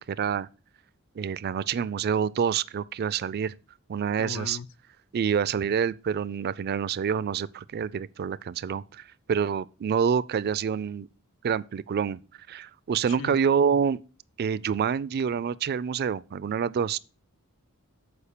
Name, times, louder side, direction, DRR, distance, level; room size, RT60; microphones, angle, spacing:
voice 1, 0.1-0.5 1.2-3.5 3.9-4.6 5.1-11.1 11.4-12.2 12.5-14.0 14.4-17.0, right 7 dB, 45° right, 0.3 m, -27 dB
voice 2, 4.2-4.7 13.1-13.4, left 6 dB, 60° left, 0.4 m, -38 dB
7.1 x 4.8 x 6.6 m
head